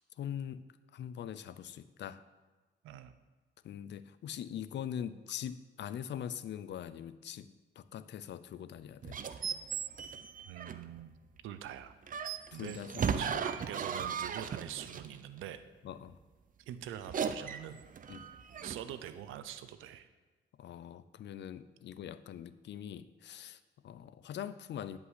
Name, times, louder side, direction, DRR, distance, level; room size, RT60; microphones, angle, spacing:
voice 1, 0.2-0.6 0.9-2.2 3.6-9.2 12.5-13.4 15.8-16.2 18.1-18.3 20.6-25.0, left 9 dB, 65° left, 14 dB, 0.6 m, -43 dB
sound 1, 9.0-11.0 12.1-15.2 16.9-19.0, right 7 dB, 45° right, 0.7 m, -37 dB
voice 2, 10.5-11.1 11.4-11.9 12.5-12.8 13.2-15.6 16.7-17.8 18.2-18.3 18.6-20.1, right 11 dB, 90° right, 11 dB, 0.8 m, -44 dB
11.0 x 5.3 x 8.2 m, 1.3 s
cardioid pair, 90°, 20 cm